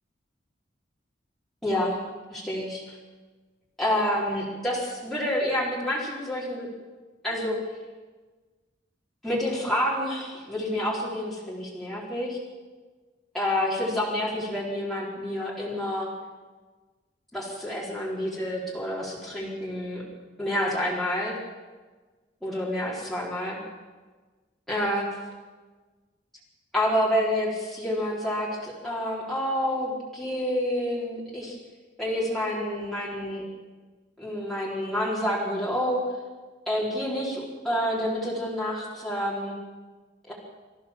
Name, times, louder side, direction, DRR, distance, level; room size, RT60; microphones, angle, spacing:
voice 1, 1.6-2.0 2.3-3.0 3.8-6.7 7.2-7.6 9.2-12.4 13.3-16.1 17.3-20.0 20.4-21.4 22.4-23.6 24.7-25.1 26.7-31.6 32.0-33.4 34.2-36.0 36.7-39.6 40.3-40.4, left 1 dB, ahead, -7 dB, 4.3 m, -28 dB
25.5 x 15.0 x 7.5 m, 1.3 s
head